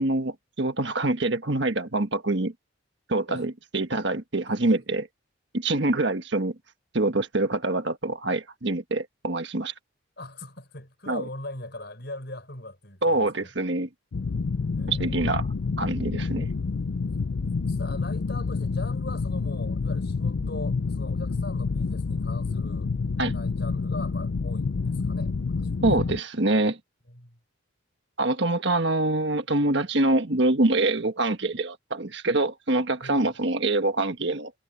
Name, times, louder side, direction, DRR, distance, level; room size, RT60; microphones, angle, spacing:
voice 1, 0.0-2.5 3.1-5.1 5.5-6.5 6.9-9.7 11.1-11.2 13.0-13.9 14.9-15.5 15.8-16.5 23.2-23.3 25.8-26.8 28.2-34.5, right 2 dB, 55° right, 1.5 m, -25 dB
voice 2, 10.2-13.5 14.8-15.2 17.7-22.9 23.3-25.9 27.1-27.4 33.0-33.3, left 2 dB, 50° left, 5.8 m, -41 dB
sound 1, 14.1-26.2, left 4 dB, 70° left, 0.5 m, -28 dB
head